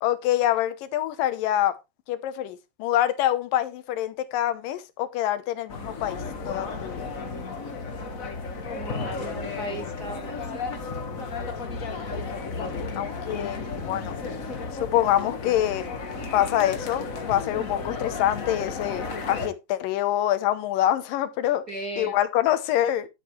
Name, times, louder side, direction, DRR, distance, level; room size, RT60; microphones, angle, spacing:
voice 1, 0.0-1.8 2.1-7.1 11.7-11.8 12.5-14.2 14.8-15.9 16.3-21.6 22.0-23.1, left 12 dB, 80° left, 2.5 m, -26 dB
sound 1, 5.7-19.5, left 4 dB, 60° left, 0.8 m, -33 dB
voice 2, 8.7-10.4 21.7-22.1, right 1 dB, 50° right, 1.2 m, -36 dB
12.0 x 7.4 x 3.2 m
omnidirectional pair, 4.0 m